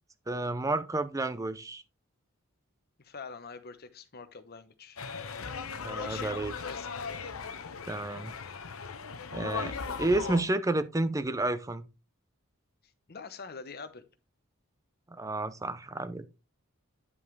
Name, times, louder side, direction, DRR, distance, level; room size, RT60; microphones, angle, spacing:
voice 1, 0.3-1.8 5.8-6.5 7.9-8.3 9.3-11.9 15.1-16.4, right 2 dB, 15° right, 0.6 m, -31 dB
voice 2, 3.0-5.0 5.9-7.1 13.1-14.1, left 5 dB, 45° left, 0.9 m, -45 dB
sound 1, 5.0-10.4, left 5 dB, 75° left, 0.9 m, -38 dB
9.5 x 5.4 x 3.3 m
head